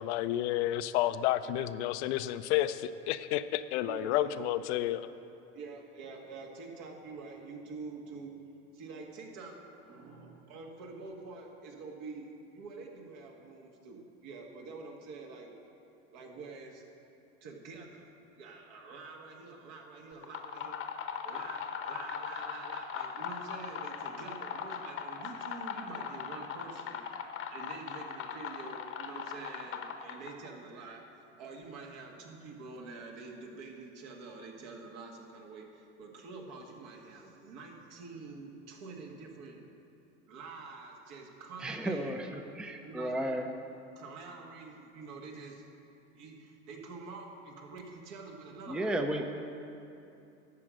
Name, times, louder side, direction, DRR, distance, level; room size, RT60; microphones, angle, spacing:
voice 1, 0.0-5.1, left 13 dB, 75° left, 12 dB, 0.5 m, -31 dB
voice 2, 3.9-5.0 5.5-8.3 8.7-15.5 16.1-16.9 17.4-18.1 18.3-20.8 21.2-27.0 27.5-39.6 40.3-43.4 44.0-45.7 46.2-48.9, right 4 dB, 65° right, 1 dB, 1.7 m, -47 dB
sound 1, 20.1-30.5, left 7 dB, 40° left, 0.9 m, -39 dB
voice 3, 41.6-42.3 42.6-43.5 48.7-49.2, right 1 dB, 5° right, 5 dB, 0.5 m, -33 dB
11.5 x 5.0 x 7.5 m, 2.7 s
supercardioid pair, 105°, 34 cm